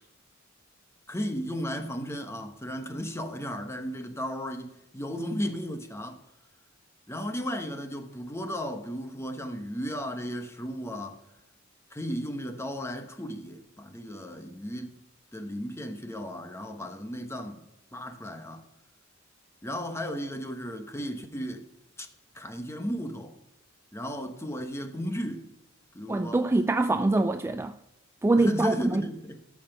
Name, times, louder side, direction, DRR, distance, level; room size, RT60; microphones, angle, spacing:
voice 1, 1.1-6.2 7.1-11.2 11.9-15.0 15.3-18.6 19.6-21.6 22.0-22.1 22.3-23.3 23.9-25.5 25.9-26.4 28.4-29.4, equal, 15° left, 1.1 m, -35 dB
voice 2, 26.1-27.8 28.2-29.0, right 2 dB, 10° right, 0.3 m, -24 dB
13.5 x 5.9 x 6.6 m
head